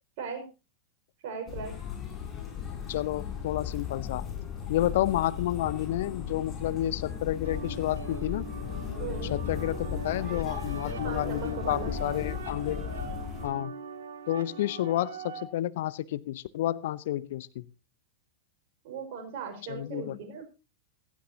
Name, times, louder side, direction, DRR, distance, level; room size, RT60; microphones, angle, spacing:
voice 1, 0.2-0.5 1.2-1.8 9.0-9.4 11.0-12.0 12.8-13.2 18.8-20.4, right 5 dB, 50° right, 4 dB, 5.5 m, -38 dB
sound 1, 1.5-13.5, left 8 dB, 20° left, 7.3 m, -36 dB
voice 2, 2.9-4.3 4.7-8.4 9.3-12.8 13.4-13.7 14.3-17.6 19.7-20.1, left 13 dB, 55° left, 19 dB, 0.7 m, -30 dB
sound 2, 7.4-15.4, right 5 dB, 65° right, 2.4 m, -42 dB
16.5 x 15.5 x 2.9 m, 0.30 s
figure-of-eight pair, 90°, 0 cm